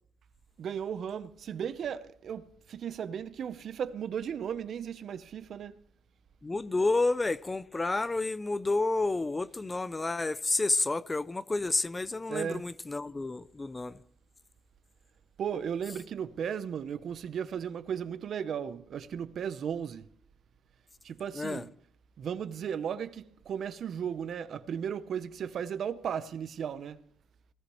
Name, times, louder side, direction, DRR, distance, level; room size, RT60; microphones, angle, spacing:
voice 1, 0.6-5.8 12.3-12.7 15.4-20.0 21.0-21.7 22.2-27.0, right 8 dB, 60° right, 0.8 m, -35 dB
voice 2, 6.4-14.0 21.3-21.6, left 3 dB, 20° left, 0.5 m, -30 dB
18.5 x 14.0 x 3.1 m
cardioid pair, 90°, 0 cm